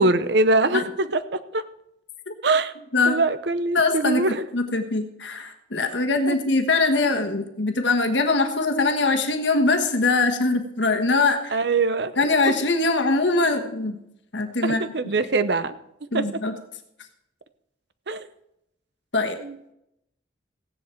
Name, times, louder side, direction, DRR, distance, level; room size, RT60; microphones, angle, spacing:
voice 1, 0.0-1.7 2.4-2.7 3.1-4.4 6.3-6.4 11.5-12.1 14.6-15.8 16.1-16.2 18.1-18.3 19.4-19.6, right 3 dB, 65° right, 13 dB, 0.7 m, -23 dB
voice 2, 3.7-11.6 12.2-14.0 14.3-14.8 16.1-16.5 19.1-19.4, left 3 dB, 75° left, 5 dB, 1.4 m, -22 dB
16.0 x 10.0 x 4.5 m, 0.81 s
head